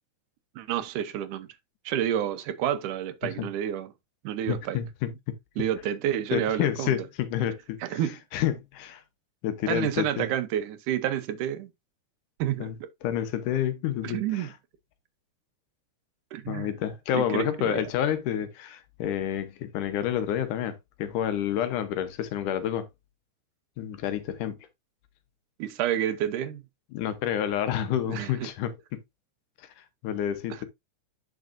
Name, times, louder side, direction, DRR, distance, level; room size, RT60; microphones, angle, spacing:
voice 1, 0.6-1.5 1.9-3.9 4.2-4.8 5.6-7.0 7.8-8.2 9.7-11.7 12.4-12.9 14.0-14.5 16.3-16.7 17.1-17.8 25.6-26.6 28.1-28.5, right 10 dB, 80° right, 2.4 m, -29 dB
voice 2, 4.5-5.4 6.3-8.0 8.3-9.0 9.4-10.3 12.6-12.8 13.0-14.5 16.5-22.9 23.8-24.6 26.9-29.0 30.0-30.7, left 10 dB, 80° left, 2.5 m, -29 dB
9.3 x 6.2 x 2.6 m
omnidirectional pair, 3.6 m